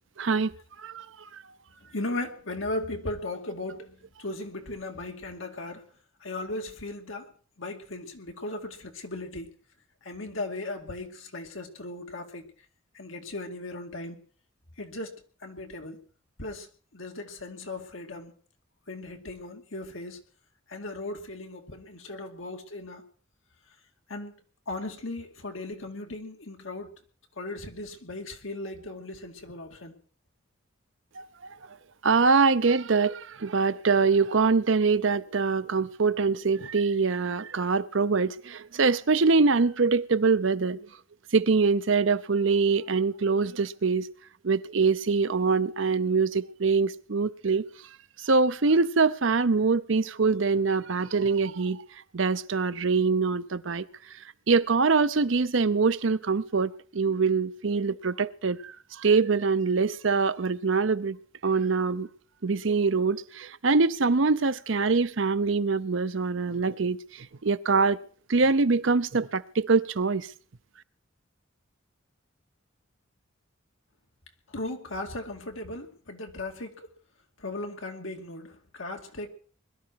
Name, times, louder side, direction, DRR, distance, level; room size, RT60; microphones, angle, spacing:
voice 1, 0.2-0.5 0.8-1.1 1.3-1.4 31.2-31.6 32.0-40.8 41.3-44.1 44.4-47.7 48.2-51.8 52.1-53.9 54.5-61.2 61.4-62.1 62.4-68.0 68.3-70.3, right 4 dB, 65° right, 0.7 m, -24 dB
voice 2, 1.9-5.9 6.2-7.3 7.6-9.5 10.0-12.5 12.9-14.2 14.8-16.0 16.4-18.3 18.9-20.2 20.7-23.0 24.1-24.3 24.7-26.9 27.4-29.9 74.5-76.7 77.4-79.3, left 2 dB, 75° left, 2.4 m, -37 dB
21.5 x 12.5 x 4.7 m
head